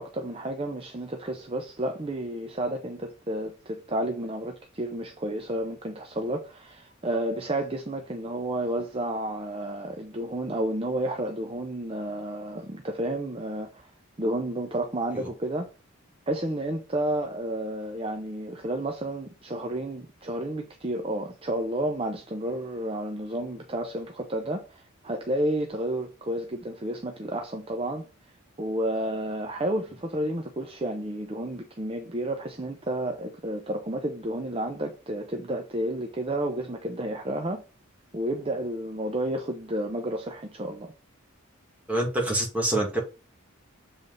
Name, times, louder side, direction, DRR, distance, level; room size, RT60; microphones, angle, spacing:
voice 1, 0.0-13.9 14.2-15.7 16.3-28.0 28.6-37.6 38.1-40.9, right 1 dB, 25° right, 0.7 m, -31 dB
voice 2, 41.9-43.0, right 1 dB, 5° right, 2.0 m, -26 dB
7.4 x 3.4 x 4.0 m
head